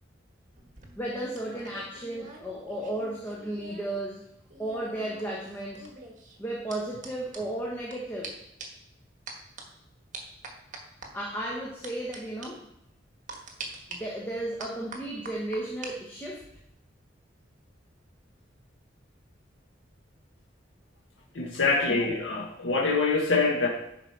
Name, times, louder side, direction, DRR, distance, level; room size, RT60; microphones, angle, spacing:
Elouan-cuillère et gobelet, 0.6-4.0 4.2-8.0 8.2-8.3 8.6-8.9 9.3-9.6 10.1-11.1 11.8-12.2 12.4-12.5 13.3-14.0 14.6-15.9 16.2-16.6, right 3 dB, 45° right, 1.5 m, -44 dB
voice 1, 1.0-4.2 4.6-5.8 6.4-8.4 11.1-12.6 13.9-16.4 21.9-22.1, right 1 dB, 10° left, -3 dB, 1.2 m, -34 dB
voice 2, 21.3-23.7, left 3 dB, 85° left, -1 dB, 1.3 m, -25 dB
10.5 x 4.8 x 4.6 m, 0.80 s
head